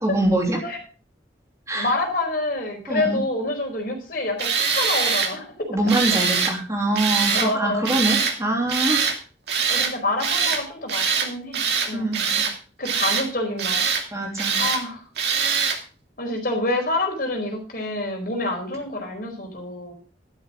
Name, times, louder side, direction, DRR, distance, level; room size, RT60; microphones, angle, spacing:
voice 1, 0.0-0.6 1.7-1.9 2.9-3.2 5.7-9.1 11.9-12.4 14.1-14.6, right 1 dB, 15° right, -1 dB, 3.0 m, -24 dB
voice 2, 1.7-5.7 7.3-7.9 9.7-12.2 12.8-13.8 14.6-15.0 16.2-19.9, left 2 dB, 50° left, 3 dB, 4.5 m, -27 dB
Tools, 4.4-5.3 5.9-6.5 7.0-7.5 7.8-8.4 8.7-9.2 9.5-9.9 10.2-10.6 10.9-11.3 11.5-12.5 12.8-13.3 13.6-14.0 14.4-14.8 15.2-15.8, right 6 dB, 65° right, 2.7 m, -23 dB
12.0 x 12.0 x 3.7 m, 0.38 s
head